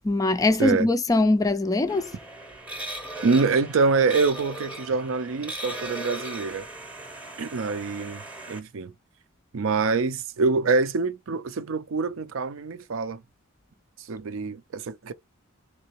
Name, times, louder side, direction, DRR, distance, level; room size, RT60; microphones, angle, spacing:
voice 1, 0.0-2.1, left 2 dB, 15° left, 0.3 m, -22 dB
sound 1, 1.9-8.6, right 1 dB, 5° right, 0.7 m, -38 dB
voice 2, 3.2-6.7 7.4-8.2 8.5-8.9 9.5-13.2 14.1-15.1, right 4 dB, 70° right, 0.5 m, -25 dB
3.7 x 2.7 x 3.0 m
head